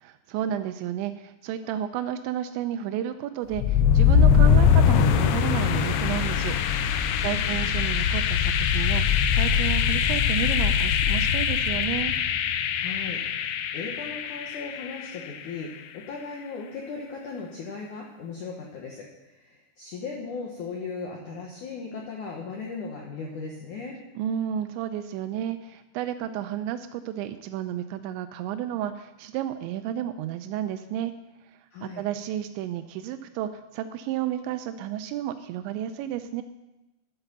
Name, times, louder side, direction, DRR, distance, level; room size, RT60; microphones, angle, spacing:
voice 1, 0.0-6.6 6.8-12.1 24.2-31.1 31.8-36.4, right 11 dB, 85° right, 9 dB, 2.9 m, -32 dB
sound 1, 3.5-15.4, left 8 dB, 85° left, 2.3 m, -22 dB
voice 2, 7.2-7.8 12.7-24.0 31.7-32.0, left 4 dB, 65° left, -1 dB, 2.0 m, -37 dB
11.0 x 8.2 x 6.7 m, 1.0 s
omnidirectional pair, 5.1 m